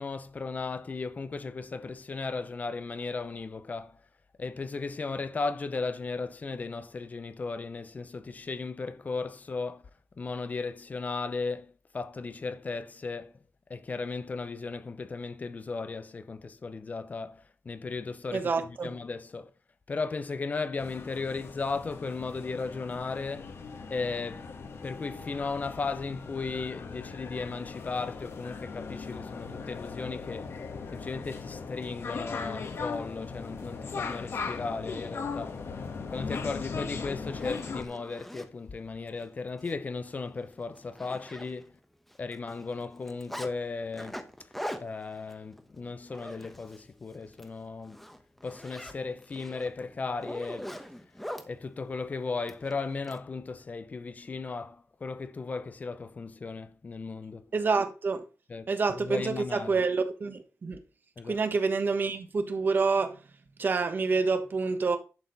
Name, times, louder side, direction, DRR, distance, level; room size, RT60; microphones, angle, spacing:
voice 1, 0.0-4.0 4.4-9.8 10.2-13.3 13.7-19.5 19.9-23.6 23.9-24.4 24.8-30.6 30.9-35.6 36.1-41.8 42.2-44.3 44.8-48.0 48.4-50.7 51.5-57.4 58.5-59.8 61.2-61.4, left 4 dB, 35° left, 0.6 m, -36 dB
voice 2, 18.3-18.9 57.5-58.2 58.7-60.8 61.2-63.2 63.6-65.0, right 4 dB, 45° right, 1.3 m, -27 dB
sound 1, 20.8-37.8, left 5 dB, 60° left, 1.4 m, -39 dB
Zipper (clothing), 36.7-36.8 37.2-38.5 39.1-39.2 39.6-39.7 40.1-40.2 40.5-41.8 42.1-43.5 43.9-46.9 47.2-47.5 47.8-51.5 52.5-53.2, equal, 5° left, 1.0 m, -42 dB
11.0 x 6.5 x 4.0 m
wide cardioid pair, 175°, 5 cm